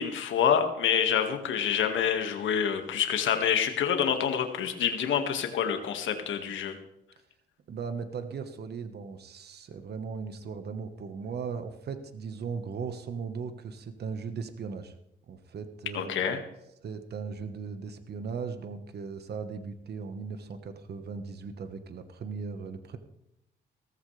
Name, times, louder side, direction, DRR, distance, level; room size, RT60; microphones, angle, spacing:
voice 1, 0.0-6.8 15.9-16.4, left 8 dB, 75° left, 6 dB, 1.9 m, -27 dB
voice 2, 7.7-14.9 15.3-16.3 16.8-23.0, right 5 dB, 55° right, 9 dB, 1.4 m, -38 dB
17.0 x 14.5 x 3.4 m, 0.80 s
cardioid pair, 90°, 20 cm